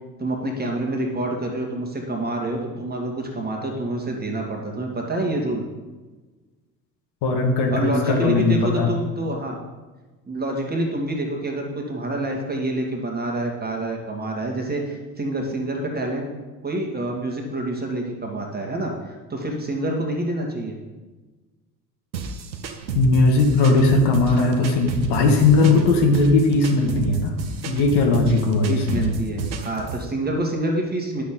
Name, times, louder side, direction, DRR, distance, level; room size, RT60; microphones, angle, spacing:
voice 1, 0.2-5.6 7.7-9.6 10.3-16.3 16.6-20.8 28.7-31.2, right 1 dB, 20° right, 1 dB, 1.8 m, -27 dB
voice 2, 7.2-8.9 22.9-27.3 27.6-29.1, left 3 dB, 50° left, 2 dB, 1.6 m, -18 dB
sound 1, 22.1-30.1, right 5 dB, 85° right, 0.8 m, -32 dB
10.0 x 6.4 x 3.8 m, 1.3 s
figure-of-eight pair, 70°, 50 cm